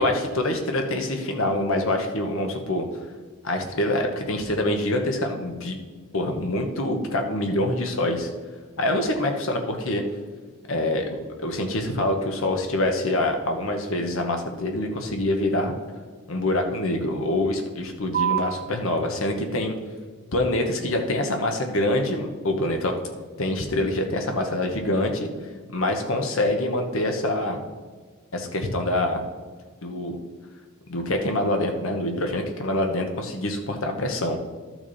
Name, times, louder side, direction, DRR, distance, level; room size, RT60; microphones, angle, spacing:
voice 1, 0.0-2.8 3.4-5.8 6.1-8.3 8.8-10.0 10.7-15.7 16.3-19.7 20.3-23.0 23.4-25.3 25.7-27.6 28.3-29.2 29.8-30.2 30.9-34.4, left 1 dB, 70° left, 4 dB, 1.2 m, -25 dB
sound 1, 18.1-25.1, right 10 dB, 45° right, 1.2 m, -36 dB
12.5 x 6.0 x 4.2 m, 1.5 s
head